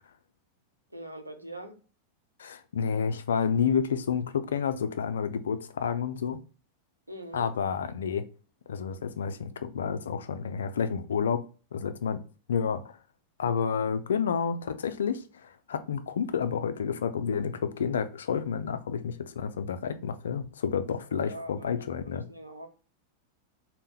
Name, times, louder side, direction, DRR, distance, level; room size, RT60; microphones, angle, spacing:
voice 1, 0.9-1.8 7.1-7.5 21.1-21.7 22.0-22.7, right 1 dB, 85° right, 0.7 m, -42 dB
voice 2, 2.4-6.4 7.3-8.2 8.7-11.4 11.7-12.2 12.5-12.9 13.4-22.2, left 6 dB, 65° left, 0.4 m, -30 dB
4.0 x 2.1 x 3.6 m
figure-of-eight pair, 90°, 0 cm